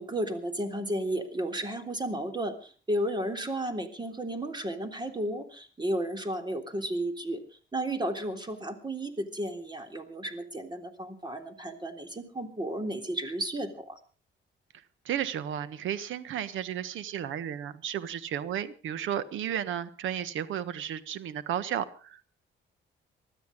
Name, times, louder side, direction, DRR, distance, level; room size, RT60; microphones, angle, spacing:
voice 1, 0.0-7.4 7.7-14.0, right 1 dB, 20° right, 7 dB, 3.4 m, -33 dB
voice 2, 14.7-22.3, right 10 dB, 80° right, 15 dB, 1.4 m, -33 dB
20.0 x 13.0 x 5.2 m, 0.39 s
cardioid pair, 90°, 20 cm